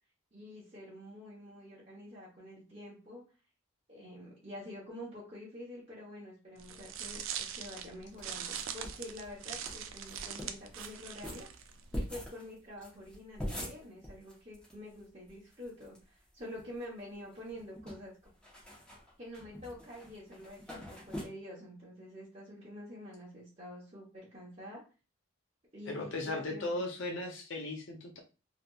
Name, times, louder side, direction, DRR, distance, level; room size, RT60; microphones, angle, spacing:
voice 1, 0.3-3.2 3.9-11.5 11.9-18.1 19.2-24.8 25.7-26.7, left 1 dB, 30° right, -7 dB, 1.0 m, -47 dB
sound 1, 6.6-12.2, right 8 dB, 80° right, 0.4 m, -42 dB
sound 2, 8.2-9.1 9.3-9.4 9.6-9.7 10.0-10.9 11.2-14.7 15.0-15.1 15.3-16.0 16.4-17.0 17.3-21.2, equal, 5° left, 0.9 m, -43 dB
voice 2, 25.9-28.2, left 2 dB, 70° left, 1 dB, 0.6 m, -37 dB
3.3 x 2.8 x 2.3 m, 0.33 s
head